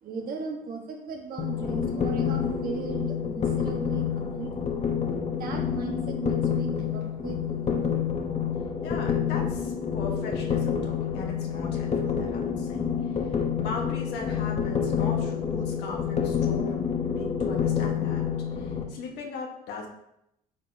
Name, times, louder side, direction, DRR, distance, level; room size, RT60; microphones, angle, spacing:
voice 1, 0.0-4.7 5.3-8.0, right 5 dB, 60° right, 1 dB, 1.5 m, -37 dB
sound 1, 1.4-18.8, left 7 dB, 40° left, 1.0 m, -28 dB
voice 2, 8.8-13.3 13.6-18.3 18.5-19.9, left 4 dB, 85° left, 0 dB, 1.4 m, -38 dB
8.7 x 4.9 x 2.8 m, 0.79 s
cardioid pair, 110°, 17 cm